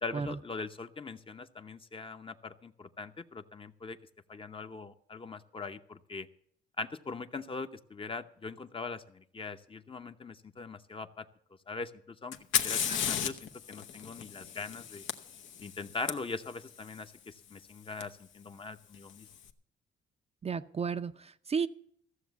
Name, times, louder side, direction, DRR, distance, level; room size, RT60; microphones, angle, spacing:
voice 1, 0.0-4.0 4.3-6.3 6.8-11.3 11.7-12.4 12.6-15.0 15.6-19.3, left 4 dB, 25° left, 8 dB, 0.8 m, -41 dB
Fire, 12.3-16.1 18.0-18.1 18.9-19.3, left 8 dB, 75° left, 1.0 m, -34 dB
voice 2, 20.4-21.7, right 6 dB, 30° right, 10 dB, 0.6 m, -33 dB
14.5 x 7.1 x 8.1 m, 0.66 s
cardioid pair, 90°, 20 cm